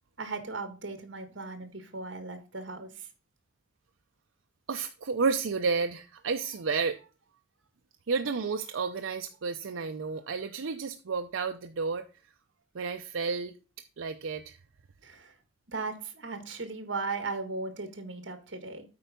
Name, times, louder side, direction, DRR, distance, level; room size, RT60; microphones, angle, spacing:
voice 1, 0.2-3.1 15.0-15.3 15.7-18.8, right 3 dB, 65° right, 1.7 m, -37 dB
voice 2, 4.7-7.0 8.1-12.1 12.7-13.5 14.0-14.6, right 4 dB, 90° right, 0.6 m, -31 dB
8.5 x 4.6 x 5.1 m
head